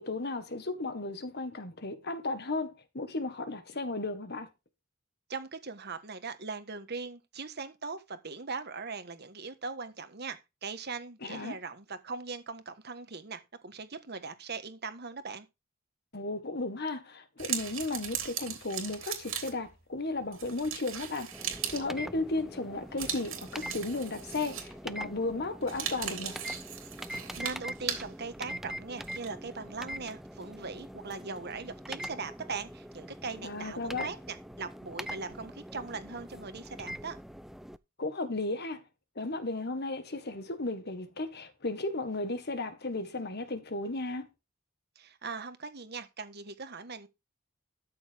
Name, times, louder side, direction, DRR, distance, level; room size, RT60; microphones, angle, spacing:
voice 1, 0.0-4.5 11.2-11.6 16.1-26.4 33.4-34.1 38.0-38.8 39.1-44.3, left 2 dB, 55° left, 1.6 m, -35 dB
voice 2, 5.3-15.5 27.1-37.2 44.9-47.1, right 4 dB, 55° right, 1.5 m, -40 dB
sound 1, 17.4-19.7 20.3-21.9 23.0-24.9 25.6-28.1 29.0-29.3, right 9 dB, 80° right, 2.9 m, -38 dB
sound 2, 21.3-37.8, equal, ahead, 0.4 m, -43 dB
13.0 x 6.9 x 3.6 m
head